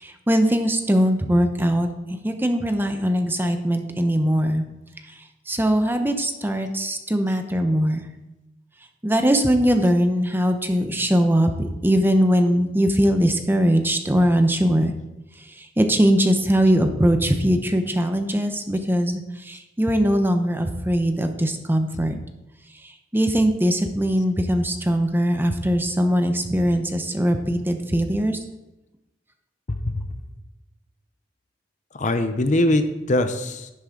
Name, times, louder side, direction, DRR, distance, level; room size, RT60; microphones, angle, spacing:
voice 1, 0.0-4.6 5.5-8.0 9.0-11.5 11.8-14.9 15.6-22.2 23.1-28.4, equal, 10° right, 6 dB, 0.9 m, -21 dB
voice 2, 29.7-30.1 31.9-33.7, left 1 dB, 40° left, 9 dB, 0.8 m, -22 dB
11.0 x 10.5 x 3.9 m, 0.97 s
head